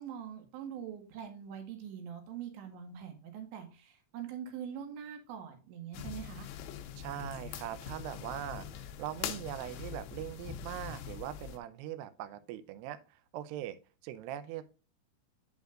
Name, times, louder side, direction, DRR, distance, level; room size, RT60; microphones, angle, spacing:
voice 1, 0.0-6.5, right 8 dB, 70° right, 5 dB, 3.7 m, -43 dB
sound 1, 5.9-11.6, left 9 dB, 80° left, 2.6 m, -43 dB
voice 2, 7.0-13.8 14.0-14.7, right 12 dB, 90° right, 12 dB, 2.3 m, -41 dB
8.1 x 8.1 x 2.5 m, 0.31 s
omnidirectional pair, 5.7 m